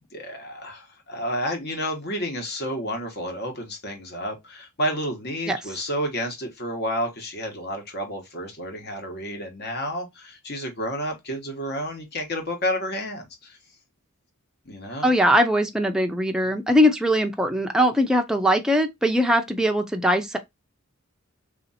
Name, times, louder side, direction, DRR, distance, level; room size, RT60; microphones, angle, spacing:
voice 1, 0.1-13.6 14.6-15.1, equal, 50° left, 1.3 m, -30 dB
voice 2, 15.0-20.4, equal, 5° right, 0.6 m, -21 dB
3.6 x 2.8 x 4.1 m
head